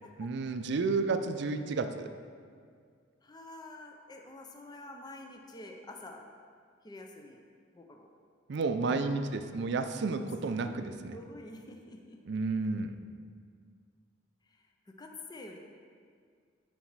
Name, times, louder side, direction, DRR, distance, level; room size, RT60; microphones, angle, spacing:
voice 1, 0.2-2.1 8.5-11.2 12.3-13.0, right 3 dB, 65° right, 9 dB, 0.4 m, -31 dB
voice 2, 3.2-6.2 6.8-7.4 7.7-8.1 10.5-12.2 14.5-14.6 15.0-15.6, left 2 dB, 20° left, 2 dB, 0.5 m, -48 dB
9.5 x 4.2 x 4.6 m, 2.1 s
head